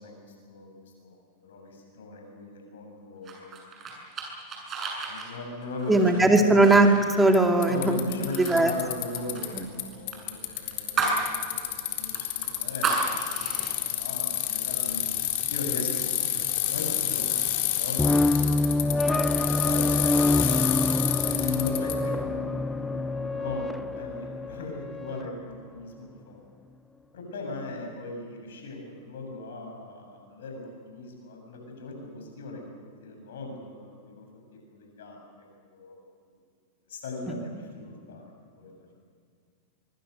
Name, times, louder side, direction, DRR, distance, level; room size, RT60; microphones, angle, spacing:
voice 1, 0.0-3.5 4.1-4.6 5.1-6.7 7.7-15.1 15.5-17.3 17.7-19.8 20.1-20.8 21.2-26.5 27.1-32.7 33.0-34.3 34.7-36.0 36.9-38.3 38.6-38.7, left 2 dB, 75° left, 2 dB, 7.8 m, -39 dB
sound 1, 3.3-7.9 8.2-8.6 8.8-11.3 11.6-11.7 12.1-13.7, right 4 dB, 30° right, 7.8 m, -32 dB
voice 2, 5.9-6.9 7.2-8.0 8.4-8.7 9.5-9.6, right 2 dB, 10° right, 3 dB, 2.4 m, -19 dB
Bicycle, 6.3-6.4 7.3-7.4 7.6-9.8 10.1-21.9, left 13 dB, 60° left, 3.7 m, -29 dB
sound 2, 18.0-25.3, left 2 dB, 10° left, 0.6 m, -26 dB
24.5 x 24.0 x 6.8 m, 2.2 s
hypercardioid pair, 105°, 0 cm